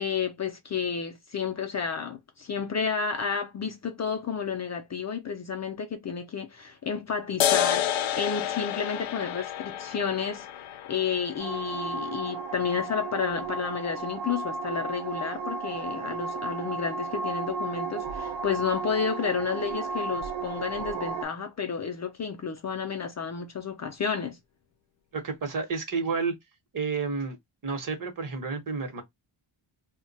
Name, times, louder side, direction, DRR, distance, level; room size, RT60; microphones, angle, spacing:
voice 1, 0.0-10.5 10.9-24.4, left 6 dB, 40° left, 0.4 m, -31 dB
sound 1, 7.4-14.4, left 11 dB, 90° left, 0.5 m, -31 dB
sound 2, 11.4-21.2, right 4 dB, 80° right, 0.7 m, -34 dB
voice 2, 25.1-26.3 26.7-27.4 27.6-29.0, right 4 dB, 45° right, 0.9 m, -30 dB
2.2 x 2.2 x 3.8 m
wide cardioid pair, 155°, 46 cm